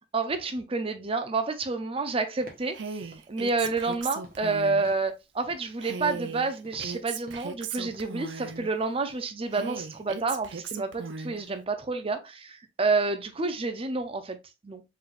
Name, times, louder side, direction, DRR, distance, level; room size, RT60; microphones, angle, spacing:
voice 1, 0.1-2.8 3.3-14.4 14.6-14.8, right 3 dB, 30° right, 0.6 m, -29 dB
sound 1, 2.4-2.7 3.0-3.3 3.6-3.9 4.2-4.5 4.8-5.1 5.4-5.7 6.1-6.4 6.6-7.0 7.3-7.6 7.9-8.2 8.5-8.8 9.1-9.2, right 1 dB, 50° right, 1.3 m, -52 dB
Female speech woman speaking, 2.7-4.9 5.8-8.7 9.5-11.4, right 5 dB, 85° right, 0.5 m, -37 dB
4.7 x 3.3 x 2.5 m
head